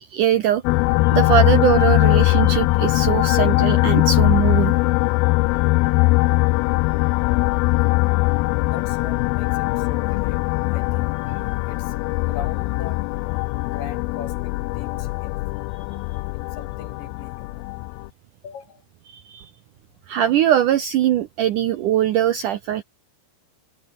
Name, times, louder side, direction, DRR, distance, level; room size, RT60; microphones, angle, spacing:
voice 1, 0.1-0.6 1.1-4.7 19.1-19.5 20.1-22.8, right 11 dB, 70° right, 2.0 m, -21 dB
sound 1, 0.6-18.1, left 23 dB, 90° left, 2.1 m, -20 dB
voice 2, 8.6-11.1 11.7-13.0 13.7-15.4 16.3-17.7 18.4-18.8, left 7 dB, 55° left, 4.5 m, -40 dB
omnidirectional pair, 4.8 m